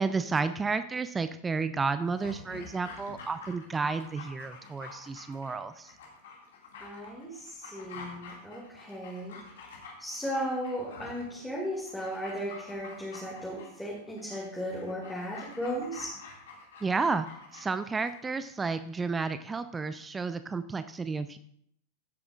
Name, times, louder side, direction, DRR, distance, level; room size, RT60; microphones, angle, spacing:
voice 1, 0.0-5.9 16.8-17.3 17.5-21.4, right 4 dB, 15° right, 12 dB, 0.4 m, -31 dB
Dog, 2.0-18.3 18.6-18.7, left 4 dB, 60° left, 2.2 m, -48 dB
voice 2, 6.7-9.4 10.0-16.2, equal, ahead, -5 dB, 2.2 m, -36 dB
15.5 x 8.6 x 2.4 m, 0.67 s
figure-of-eight pair, 90°, 0 cm